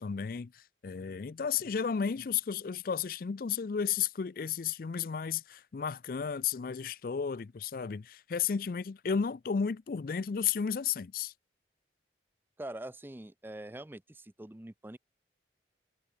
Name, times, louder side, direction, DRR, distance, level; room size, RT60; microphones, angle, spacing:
voice 1, 0.0-11.3, left 7 dB, 55° left, 0.4 m, -33 dB
voice 2, 12.6-15.0, right 1 dB, 10° right, 0.5 m, -44 dB
head